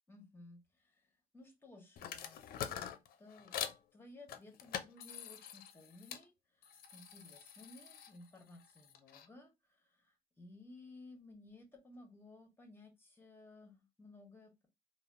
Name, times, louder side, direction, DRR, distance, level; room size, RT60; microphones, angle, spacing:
voice 1, 0.1-2.7 3.2-14.7, left 2 dB, 15° left, 4 dB, 1.1 m, -58 dB
sound 1, 2.0-3.8 4.3-6.2 6.6-9.3, left 9 dB, 60° left, 0.5 m, -45 dB
3.2 x 2.3 x 2.4 m, 0.22 s
cardioid pair, 110°, 17 cm